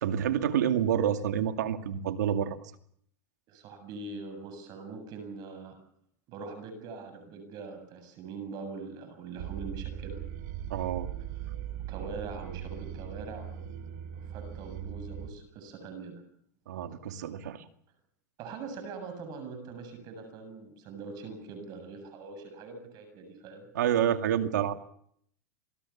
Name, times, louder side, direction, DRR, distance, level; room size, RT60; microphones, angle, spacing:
voice 1, 0.0-2.6 10.7-11.1 16.7-17.6 23.7-24.7, right 9 dB, 80° right, 8 dB, 2.3 m, -28 dB
voice 2, 3.5-5.8 6.3-10.2 11.9-16.2 18.4-23.7, right 4 dB, 45° right, 7 dB, 7.6 m, -43 dB
sound 1, 9.4-15.3, right 10 dB, 65° right, 2.6 m, -39 dB
27.0 x 20.0 x 7.2 m, 0.66 s
hypercardioid pair, 120°, 9 cm